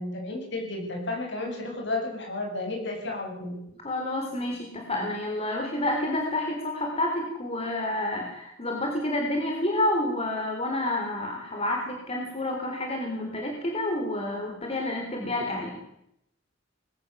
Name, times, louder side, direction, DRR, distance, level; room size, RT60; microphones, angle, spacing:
voice 1, 0.0-3.6, left 2 dB, 65° left, 1 dB, 7.6 m, -32 dB
voice 2, 3.8-15.8, left 1 dB, 30° left, 1 dB, 3.8 m, -29 dB
21.0 x 17.5 x 7.3 m, 0.79 s
head